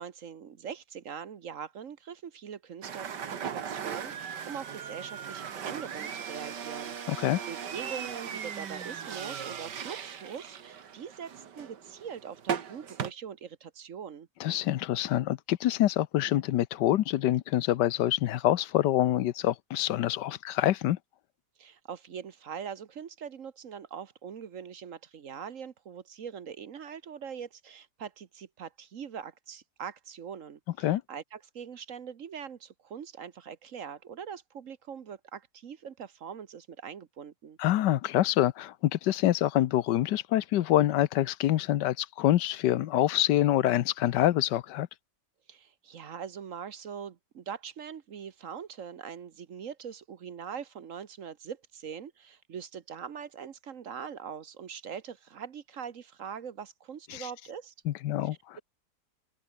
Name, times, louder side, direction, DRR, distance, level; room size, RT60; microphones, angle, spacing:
voice 1, 0.0-14.3 21.6-37.6 45.5-57.7, right 7 dB, 55° right, 1.3 m, -42 dB
sound 1, 2.8-13.1, right 8 dB, 85° right, 2.2 m, -38 dB
voice 2, 7.1-7.4 14.4-21.0 30.8-31.0 37.6-44.9 57.1-57.3 57.9-58.6, left 13 dB, 85° left, 1.4 m, -26 dB
omnidirectional pair, 1.8 m